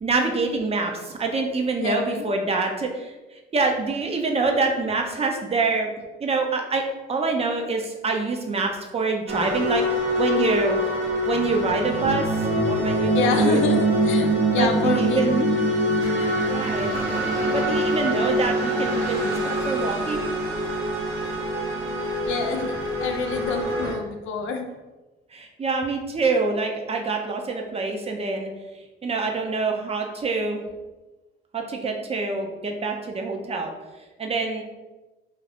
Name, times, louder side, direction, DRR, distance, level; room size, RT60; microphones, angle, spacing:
voice 1, 0.0-3.1 3.5-5.9 6.2-6.8 7.1-10.8 11.3-13.6 14.5-15.5 16.5-16.9 17.5-20.3 25.3-28.5 29.0-30.6 31.5-33.7 34.2-34.6, right 3 dB, 30° right, 3 dB, 0.5 m, -26 dB
voice 2, 1.8-2.3 13.1-15.5 22.3-24.7, left 4 dB, 85° left, 5 dB, 0.4 m, -28 dB
sound 1, 9.3-23.9, right 1 dB, 75° right, 0.8 m, -24 dB
2.4 x 2.4 x 3.4 m, 1.1 s
cardioid pair, 90°, 20 cm